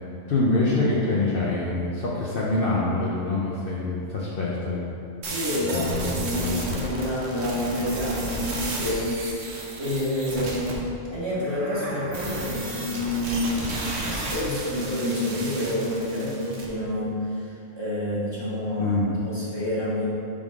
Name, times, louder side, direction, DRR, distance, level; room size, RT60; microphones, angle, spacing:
voice 1, 0.3-4.8 5.7-6.8 18.8-19.1, left 2 dB, 55° left, -6 dB, 0.8 m, -25 dB
voice 2, 5.2-9.1 9.5-13.8 14.1-20.0, left 1 dB, 20° right, -9 dB, 1.4 m, -28 dB
sound 1, 5.2-10.7 12.1-16.7, right 2 dB, 65° right, 1.1 m, -33 dB
sound 2, 11.2-12.8, right 1 dB, 50° right, 1.0 m, -38 dB
5.4 x 5.2 x 3.6 m, 2.6 s
omnidirectional pair, 1.3 m